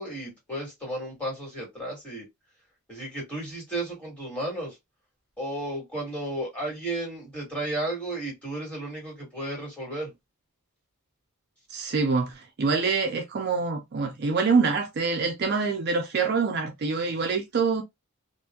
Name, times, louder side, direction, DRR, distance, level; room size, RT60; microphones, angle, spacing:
voice 1, 0.0-2.3 2.9-4.8 5.4-10.1, right 1 dB, 5° left, 1.8 m, -33 dB
voice 2, 11.7-17.8, right 4 dB, 50° right, 0.5 m, -25 dB
2.9 x 2.5 x 2.3 m
head